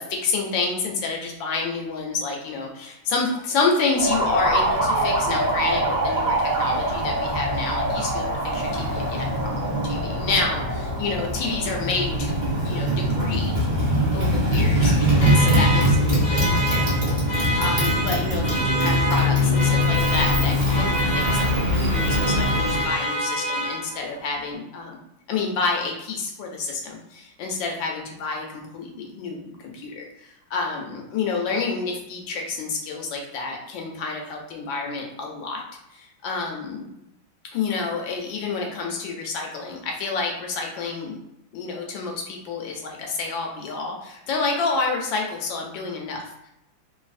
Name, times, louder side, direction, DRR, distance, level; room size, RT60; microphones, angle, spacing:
voice 1, 0.0-9.3 9.5-12.4 12.6-14.9 15.2-17.2 17.6-24.9 25.3-35.6 35.9-36.9 37.5-41.2 41.5-46.2, left 4 dB, 75° left, 1 dB, 1.2 m, -29 dB
Motorcycle, 3.9-22.9, equal, 35° right, 0.8 m, -22 dB
sound 1, 7.3-15.9, left 1 dB, 75° right, 1.2 m, -37 dB
Alarm, 14.8-24.2, equal, 60° left, 1.0 m, -28 dB
3.2 x 2.6 x 2.4 m, 0.83 s
omnidirectional pair, 2.2 m